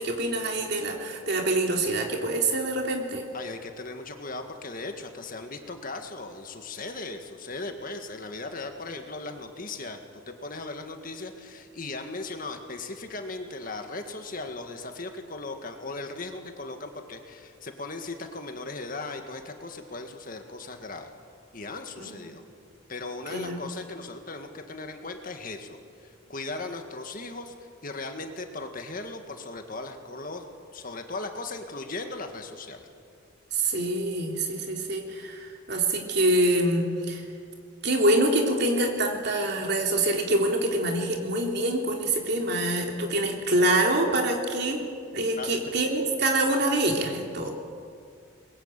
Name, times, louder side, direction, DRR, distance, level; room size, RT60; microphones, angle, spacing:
voice 1, 0.0-3.3 22.0-22.2 23.3-23.6 33.5-37.2 37.8-44.8 45.1-47.5, right 1 dB, 50° right, 1 dB, 3.4 m, -25 dB
voice 2, 3.3-21.1 21.5-22.4 22.9-30.5 30.7-32.8 45.4-45.6, left 3 dB, 40° left, 5 dB, 1.9 m, -38 dB
21.5 x 21.5 x 9.0 m, 2.2 s
head